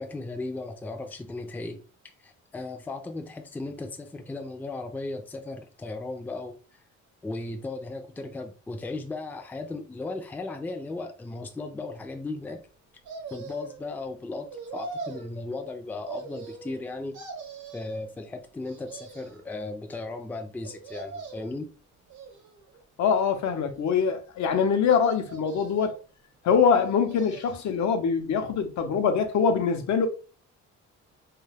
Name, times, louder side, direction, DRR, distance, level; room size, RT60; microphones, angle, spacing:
voice 1, 0.0-1.8 2.2-6.8 7.2-12.6 13.3-17.1 17.7-21.7, left 2 dB, 5° left, 0.4 m, -36 dB
sound 1, 13.0-13.9 14.5-15.3 16.0-16.8 17.1-18.0 18.6-19.4 20.6-21.6 22.1-22.8 23.4-24.2 25.2-26.0 26.8-27.7 28.1-28.2, right 4 dB, 75° right, 0.9 m, -41 dB
voice 2, 23.0-25.9 26.4-30.1, left 6 dB, 70° left, 0.7 m, -23 dB
2.3 x 2.3 x 3.3 m
cardioid pair, 90°, 30 cm